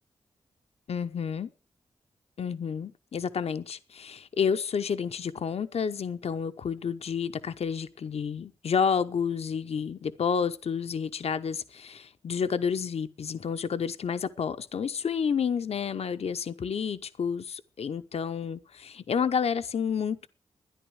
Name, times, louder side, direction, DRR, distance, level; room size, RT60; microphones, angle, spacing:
voice 1, 0.9-1.5 2.4-20.3, left 6 dB, 65° left, 0.8 m, -30 dB
12.5 x 10.0 x 6.3 m
supercardioid pair, 40°, 11 cm